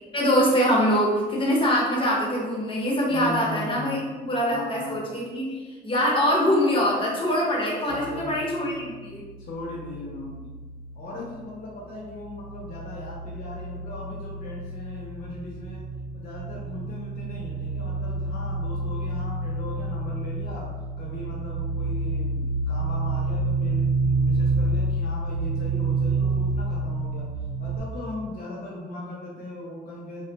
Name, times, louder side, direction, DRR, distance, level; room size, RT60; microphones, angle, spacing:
voice 1, 0.1-9.2, equal, 25° left, -4 dB, 0.8 m, -24 dB
voice 2, 3.1-5.0 7.9-8.4 9.4-10.5 10.9-15.8 16.1-20.7 21.0-30.3, left 2 dB, 45° left, -5 dB, 0.5 m, -38 dB
sound 1, 7.9-11.7 12.0-27.8, right 3 dB, 85° right, 0.5 m, -29 dB
2.4 x 2.1 x 2.8 m, 1.3 s
cardioid pair, 90°, 20 cm